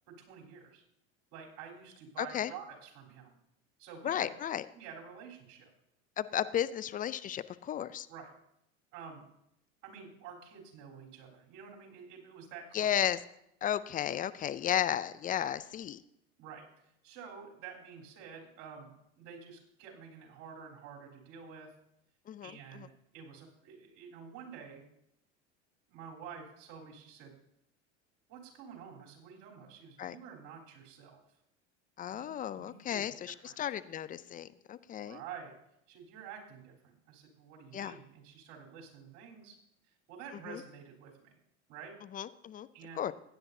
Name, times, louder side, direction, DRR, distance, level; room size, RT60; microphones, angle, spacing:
voice 1, 0.1-0.8 1.3-3.4 3.8-4.3 4.7-5.7 8.1-8.3 8.9-9.2 9.8-12.9 16.4-16.6 17.0-21.7 22.4-24.9 25.9-27.3 28.3-31.2 32.1-32.3 32.6-33.6 35.0-35.5 35.9-39.6 39.8-41.4 41.7-41.9 42.7-43.1, right 6 dB, 55° right, -2 dB, 3.6 m, -49 dB
voice 2, 2.2-2.5 4.0-4.6 6.2-8.1 12.7-13.2 13.6-16.0 22.3-22.9 30.0-30.2 32.0-35.2 37.7-37.9 40.5-40.6 42.1-42.7 43.0-43.1, left 10 dB, 25° left, 16 dB, 0.4 m, -34 dB
16.0 x 10.0 x 2.7 m, 0.77 s
hypercardioid pair, 85°, 37 cm